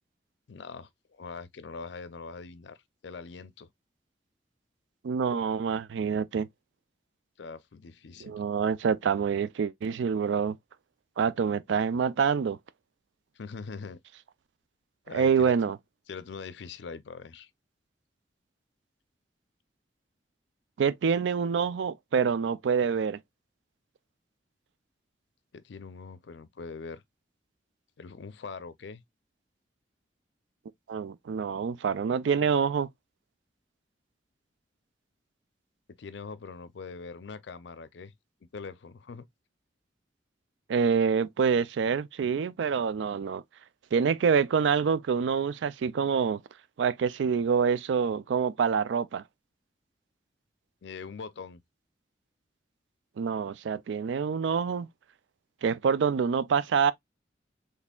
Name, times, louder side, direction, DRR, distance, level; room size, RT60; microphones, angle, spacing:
voice 1, 0.5-2.8 3.0-3.7 7.4-8.4 13.4-14.0 15.1-15.7 16.1-17.5 25.5-27.0 28.0-29.0 36.0-38.1 38.4-39.3 50.8-51.6, left 4 dB, 70° left, 0.5 m, -42 dB
voice 2, 5.0-6.5 8.2-10.6 11.2-12.6 15.1-15.8 20.8-23.2 30.9-32.9 40.7-43.4 43.9-46.4 46.8-49.2 53.2-54.9 55.6-56.9, right 6 dB, 80° right, 0.3 m, -26 dB
4.2 x 3.3 x 2.2 m
head